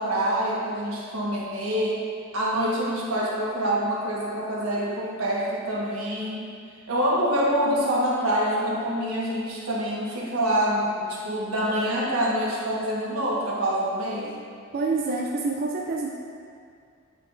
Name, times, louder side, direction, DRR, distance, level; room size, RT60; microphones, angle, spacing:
voice 1, 0.0-2.0 2.3-6.5 6.9-14.3, equal, 85° right, -5 dB, 1.2 m, -26 dB
voice 2, 14.7-16.1, right 3 dB, 45° right, 0 dB, 0.3 m, -27 dB
8.4 x 4.4 x 2.5 m, 2.3 s
head